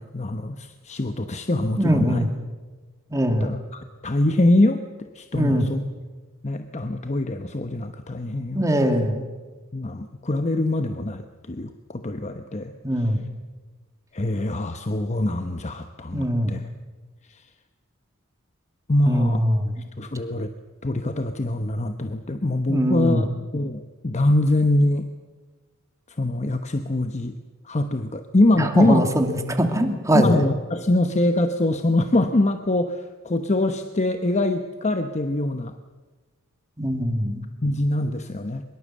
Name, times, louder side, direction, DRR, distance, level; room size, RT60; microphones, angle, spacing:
voice 1, 0.0-2.2 3.3-5.8 6.4-8.7 9.7-12.7 14.1-16.6 17.3-17.4 18.9-19.4 20.0-20.5 20.8-23.3 23.5-25.1 26.1-27.3 27.6-29.0 30.1-35.7 37.6-38.6, left 1 dB, 35° left, 7 dB, 1.0 m, -24 dB
voice 2, 1.7-2.3 3.1-3.5 5.3-5.7 8.5-9.2 12.8-13.2 16.1-16.5 19.0-19.8 22.7-23.3 28.5-30.4 36.8-37.4, equal, 15° right, 5 dB, 2.5 m, -22 dB
23.0 x 22.5 x 7.6 m, 1.3 s
head